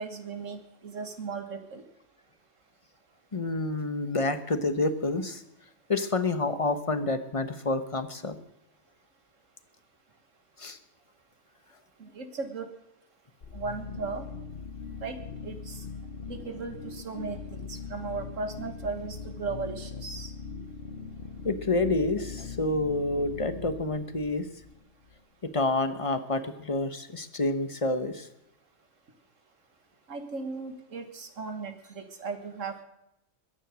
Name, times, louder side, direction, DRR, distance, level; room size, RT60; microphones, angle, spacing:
voice 1, 0.0-1.8 12.0-12.7 13.5-14.3 15.0-15.8 16.3-20.3 30.1-32.8, right 4 dB, 85° right, 6 dB, 1.8 m, -37 dB
voice 2, 3.3-5.4 5.9-8.4 10.6-10.8 21.4-24.5 25.4-28.3, left 2 dB, 30° left, 10 dB, 1.1 m, -28 dB
sound 1, 13.4-25.2, left 5 dB, 50° left, 1.1 m, -41 dB
21.5 x 10.0 x 6.3 m, 0.83 s
omnidirectional pair, 1.3 m